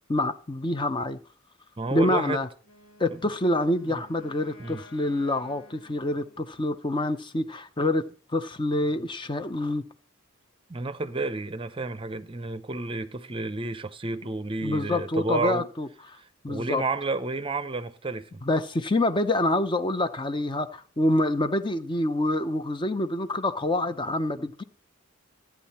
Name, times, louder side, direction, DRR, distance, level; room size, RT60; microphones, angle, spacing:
voice 1, 0.1-1.2 1.9-2.5 3.0-9.8 14.6-15.9 16.4-16.8 18.4-24.6, left 1 dB, 25° left, 0.6 m, -26 dB
voice 2, 1.8-2.4 3.1-3.3 3.8-4.0 4.6-4.8 10.7-15.7 16.2-18.4, right 3 dB, 25° right, 0.6 m, -31 dB
Wind instrument woodwind instrument, 2.6-6.8, left 2 dB, 80° left, 2.4 m, -53 dB
13.5 x 9.3 x 4.2 m
head